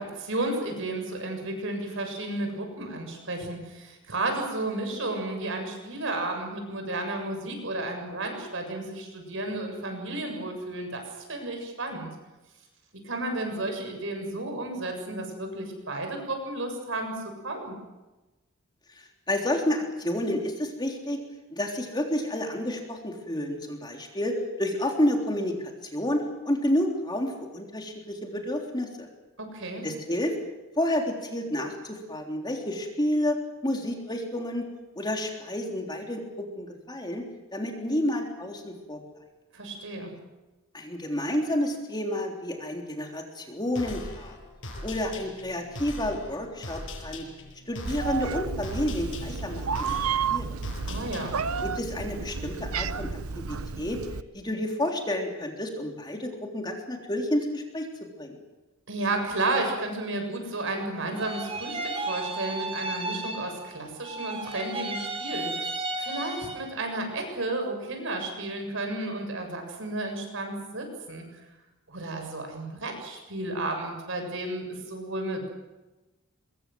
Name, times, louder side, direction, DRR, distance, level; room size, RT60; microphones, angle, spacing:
voice 1, 0.0-12.1 13.0-17.8 29.4-29.9 39.5-40.1 50.9-51.4 58.9-71.3 71.9-75.5, right 2 dB, 60° right, 4 dB, 7.3 m, -32 dB
voice 2, 19.0-21.2 21.5-29.1 29.8-30.4 30.8-34.7 34.9-37.3 37.5-39.0 40.7-44.4 44.8-47.2 47.7-50.0 50.3-50.4 51.6-53.1 53.3-54.0 54.3-57.9 58.2-58.4, left 1 dB, 20° left, 2 dB, 3.5 m, -30 dB
sound 1, 43.7-51.6, left 1 dB, 60° left, 7.0 m, -40 dB
Meow, 47.8-54.2, right 5 dB, 80° right, 0.9 m, -31 dB
sound 2, 61.1-66.8, right 2 dB, 25° right, 5.6 m, -34 dB
24.5 x 22.5 x 7.7 m, 1.1 s
head